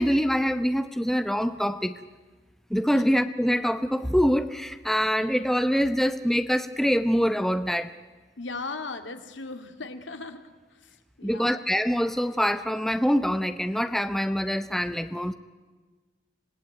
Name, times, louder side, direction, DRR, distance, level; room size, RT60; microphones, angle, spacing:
voice 1, 0.0-2.0 2.7-7.9 11.2-15.3, equal, ahead, 10 dB, 0.7 m, -25 dB
voice 2, 8.4-10.4 10.7-11.6, left 3 dB, 85° left, 7 dB, 2.1 m, -38 dB
26.0 x 18.5 x 9.2 m, 1.3 s
head